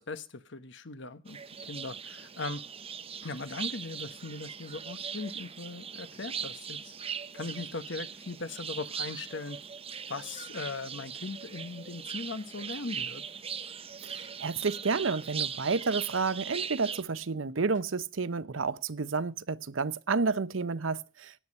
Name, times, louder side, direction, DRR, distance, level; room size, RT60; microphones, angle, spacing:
voice 1, 0.0-2.6 3.2-7.0 7.3-9.6 10.1-13.2, left 3 dB, 65° left, 1.2 m, -39 dB
sound 1, 1.3-17.0, right 7 dB, 30° right, 0.8 m, -40 dB
voice 2, 14.0-21.3, right 4 dB, 85° right, 0.8 m, -30 dB
16.0 x 9.7 x 5.4 m
head